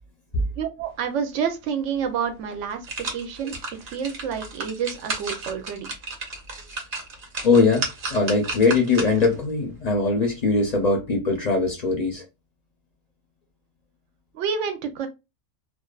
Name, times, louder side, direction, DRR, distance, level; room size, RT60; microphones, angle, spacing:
voice 1, 0.6-3.5 3.9-5.9 14.3-15.1, right 7 dB, 85° right, 0.9 m, -28 dB
sound 1, 2.0-2.1 2.5-9.4 9.8-9.9, right 3 dB, 50° right, 0.8 m, -34 dB
voice 2, 7.4-12.2, left 3 dB, 45° left, 0.6 m, -21 dB
2.5 x 2.3 x 2.2 m
omnidirectional pair, 1.2 m